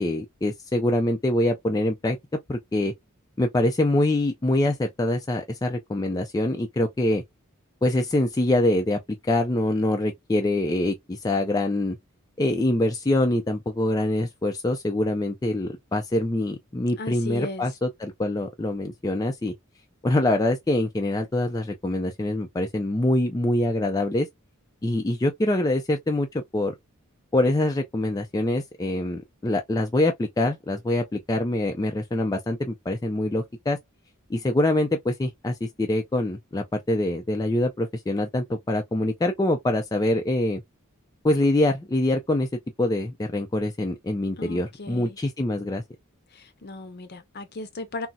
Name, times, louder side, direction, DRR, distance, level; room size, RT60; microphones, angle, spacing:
voice 1, 0.0-2.2 2.5-2.9 3.4-7.2 7.8-9.0 9.3-12.0 12.4-19.5 20.0-24.3 24.8-26.7 27.3-33.8 34.3-40.6 41.2-42.5 42.8-45.8, left 1 dB, 15° left, 0.4 m, -24 dB
voice 2, 17.0-17.6 44.4-45.2 46.6-48.1, left 2 dB, 50° left, 0.7 m, -36 dB
4.0 x 2.0 x 2.3 m
head